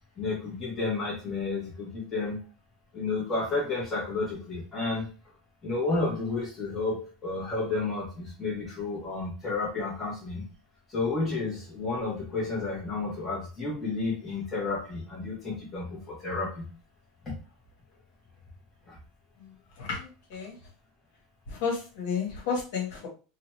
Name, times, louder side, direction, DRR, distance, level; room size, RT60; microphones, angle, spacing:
voice 1, 0.2-2.4 2.9-5.1 5.6-10.4 10.9-16.6 17.2-17.3 18.9-19.0, left 3 dB, 10° left, -6 dB, 1.2 m, -31 dB
voice 2, 19.8-20.6 21.5-23.1, left 5 dB, 65° left, 0 dB, 1.2 m, -32 dB
2.9 x 2.3 x 3.1 m, 0.34 s
supercardioid pair, 175°, 0 cm